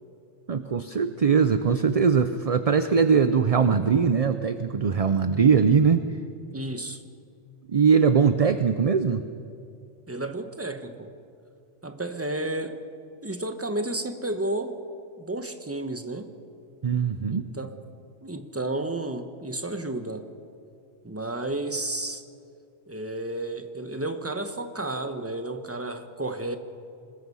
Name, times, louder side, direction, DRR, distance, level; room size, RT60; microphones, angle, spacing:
voice 1, 0.5-6.0 7.7-9.2 16.8-17.5, right 6 dB, 40° right, 10 dB, 0.6 m, -21 dB
voice 2, 6.5-7.0 10.1-11.1 11.8-12.8 13.2-14.8 15.2-16.3 17.3-17.8 18.2-20.3 21.0-22.2 22.9-26.6, right 2 dB, 10° right, 8 dB, 1.1 m, -32 dB
25.5 x 20.5 x 5.6 m, 2.5 s
omnidirectional pair, 1.2 m